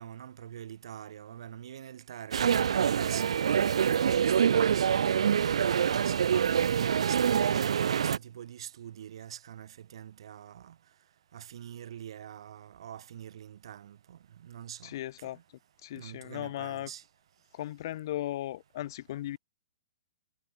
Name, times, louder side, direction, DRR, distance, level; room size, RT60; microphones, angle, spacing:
voice 1, 0.0-5.1 5.6-10.7 11.3-14.9 15.9-17.0, right 10 dB, 60° right, 6.5 m, -44 dB
sound 1, 2.3-8.2, right 8 dB, 85° right, 0.7 m, -25 dB
voice 2, 14.8-15.4 15.8-16.9 17.5-19.4, left 14 dB, 45° left, 0.4 m, -37 dB
hypercardioid pair, 165°, 3 cm